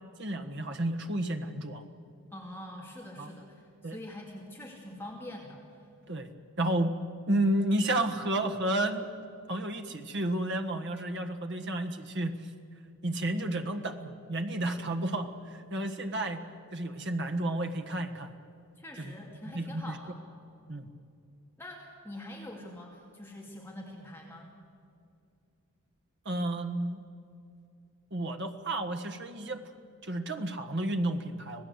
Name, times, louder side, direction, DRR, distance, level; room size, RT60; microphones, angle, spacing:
voice 1, 0.2-1.8 3.2-3.3 3.8-4.0 6.1-6.3 6.6-7.0 7.3-9.1 9.5-12.3 13.0-14.0 14.3-16.4 16.7-18.3 19.0-19.1 19.5-20.0 20.7-20.9 26.2-27.0 28.1-29.6 30.0-31.6, right 1 dB, 50° right, 6 dB, 1.5 m, -31 dB
voice 2, 2.3-5.6 5.9-6.0 18.8-20.1 21.6-24.5, left 1 dB, 10° left, -2 dB, 2.4 m, -44 dB
26.0 x 18.0 x 8.1 m, 2.5 s
head